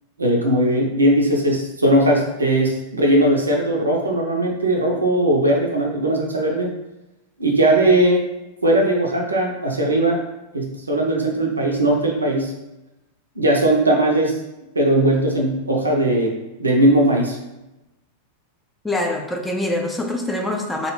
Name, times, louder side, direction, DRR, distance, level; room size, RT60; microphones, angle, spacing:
voice 1, 0.2-6.7 7.4-8.2 8.6-10.2 10.5-12.5 13.4-14.3 14.8-16.3 16.6-17.4, right 1 dB, 80° right, 0 dB, 0.4 m, -18 dB
voice 2, 18.8-20.9, left 1 dB, 5° left, 1 dB, 0.3 m, -24 dB
2.3 x 2.1 x 3.0 m, 0.95 s
figure-of-eight pair, 90°, 0 cm